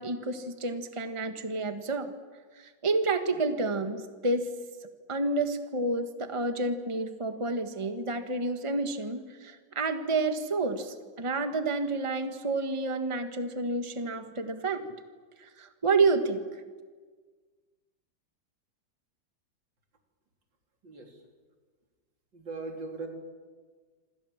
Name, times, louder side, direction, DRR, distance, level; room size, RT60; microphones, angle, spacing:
voice 1, 0.0-2.1 2.6-4.5 5.1-14.8 15.4-16.4, right 3 dB, 20° right, 7 dB, 1.4 m, -29 dB
voice 2, 20.8-21.2 22.3-23.1, right 3 dB, 85° right, 2 dB, 4.3 m, -39 dB
27.0 x 26.5 x 7.3 m, 1.5 s
omnidirectional pair, 1.9 m